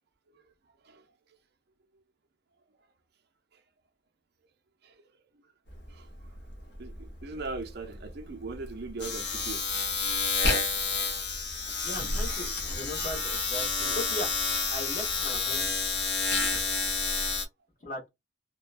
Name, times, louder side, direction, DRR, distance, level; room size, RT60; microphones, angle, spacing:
Domestic sounds home sounds, 5.7-5.9 6.2-17.4, left 4 dB, 60° left, 1.0 m, -29 dB
voice 1, 6.8-9.6, right 3 dB, 55° right, 0.5 m, -39 dB
voice 2, 11.8-14.3 14.7-15.7 17.8-18.1, left 1 dB, 45° left, 1.2 m, -38 dB
2.9 x 2.2 x 2.4 m
head